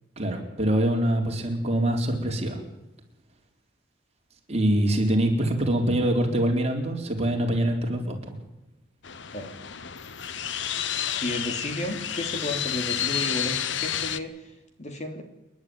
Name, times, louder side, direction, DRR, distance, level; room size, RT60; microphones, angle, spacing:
voice 1, 0.2-2.6 4.5-8.4, right 1 dB, 35° right, 2 dB, 4.1 m, -24 dB
sound 1, 9.0-14.2, left 9 dB, 70° left, 1.0 m, -30 dB
voice 2, 11.2-15.2, left 1 dB, 40° left, 5 dB, 3.0 m, -33 dB
28.5 x 11.0 x 9.7 m, 1.0 s
head